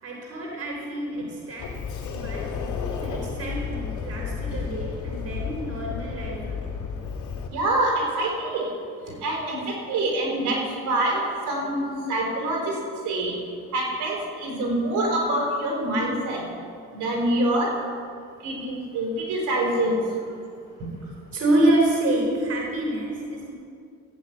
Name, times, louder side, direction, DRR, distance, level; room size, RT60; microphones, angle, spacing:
voice 1, 0.0-1.8 2.1-2.5 3.0-6.8 17.8-17.9 21.3-23.5, right 1 dB, 50° right, -1 dB, 3.6 m, -27 dB
Sliding door, 1.6-7.5, left 5 dB, 70° left, 2.6 m, -32 dB
voice 2, 7.5-8.7 9.2-11.2 11.4-12.6 13.0-13.3 13.7-16.4 17.0-17.7 18.4-20.0, right 1 dB, 80° right, -1 dB, 4.6 m, -25 dB
14.5 x 8.9 x 8.4 m, 2.3 s
cardioid pair, 90°, 30 cm